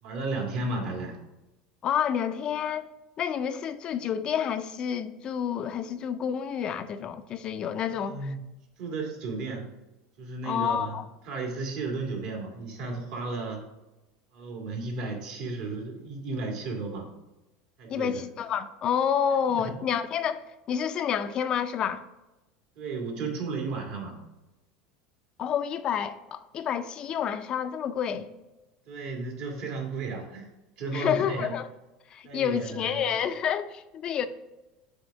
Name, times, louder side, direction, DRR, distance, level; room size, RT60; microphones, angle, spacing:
voice 1, 0.0-1.2 7.9-8.4 8.8-9.7 10.2-13.6 14.3-17.1 17.8-18.2 19.5-19.6 22.8-24.2 28.9-30.5 30.8-31.6 32.2-33.1, right 3 dB, 65° right, 1.8 m, -34 dB
voice 2, 1.8-2.9 3.2-8.3 10.4-11.1 17.9-22.1 25.4-28.3 30.9-31.7 32.1-34.3, left 8 dB, 40° left, 0.4 m, -29 dB
6.4 x 3.5 x 5.1 m
supercardioid pair, 115°, 2 cm